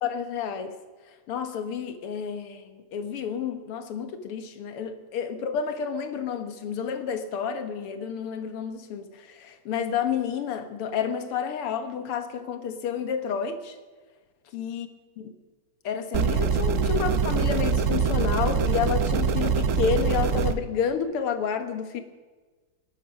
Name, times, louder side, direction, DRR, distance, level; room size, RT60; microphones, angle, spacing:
voice 1, 0.0-0.8 1.3-13.8 14.5-14.9 15.2-15.3 15.8-22.0, left 7 dB, 85° left, 8 dB, 2.2 m, -30 dB
sound 1, 16.1-20.5, right 5 dB, 75° right, 0.7 m, -24 dB
19.0 x 12.0 x 6.0 m, 1.3 s
omnidirectional pair, 2.4 m